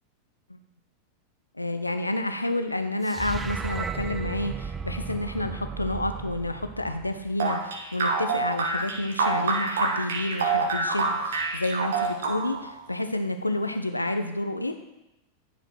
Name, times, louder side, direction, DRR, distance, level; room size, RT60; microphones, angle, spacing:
voice 1, 1.5-14.7, left 1 dB, 85° left, 8 dB, 0.5 m, -29 dB
sound 1, 3.0-7.4, right 5 dB, 15° right, 0.4 m, -35 dB
sound 2, 7.4-12.7, right 4 dB, 60° right, 1.3 m, -26 dB
10.0 x 5.0 x 4.3 m, 0.90 s
figure-of-eight pair, 90°, 0 cm